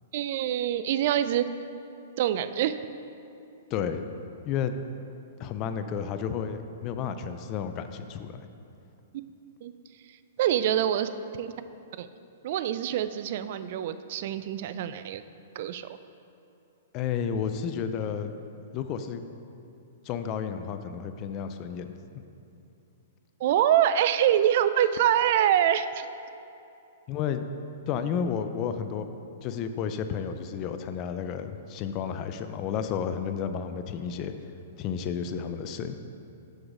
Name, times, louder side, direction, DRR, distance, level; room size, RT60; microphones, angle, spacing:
voice 1, 0.1-1.5 2.2-2.8 9.6-9.7 10.4-11.1 11.4-11.5 12.0-12.1 12.4-15.2 15.5-16.0 23.4-26.1, right 10 dB, 55° right, 12 dB, 0.3 m, -25 dB
voice 2, 3.7-4.0 4.5-4.8 5.4-8.4 16.9-18.3 18.7-19.2 20.1-22.2 27.1-27.4 27.9-29.1 29.4-34.3 34.8-36.0, left 7 dB, 35° left, 9 dB, 0.4 m, -32 dB
6.3 x 4.7 x 5.0 m, 2.7 s
hypercardioid pair, 135°, 0 cm